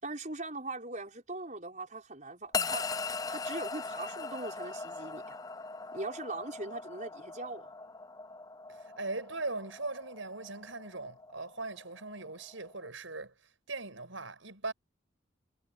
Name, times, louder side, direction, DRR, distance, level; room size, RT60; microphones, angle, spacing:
voice 1, 0.0-2.9 3.3-5.4 5.9-7.7, right 2 dB, 40° right, 5.6 m, -40 dB
sound 1, 2.5-12.9, left 4 dB, 20° left, 0.5 m, -40 dB
voice 2, 8.7-13.3 13.7-14.7, right 3 dB, 85° right, 6.1 m, -40 dB
head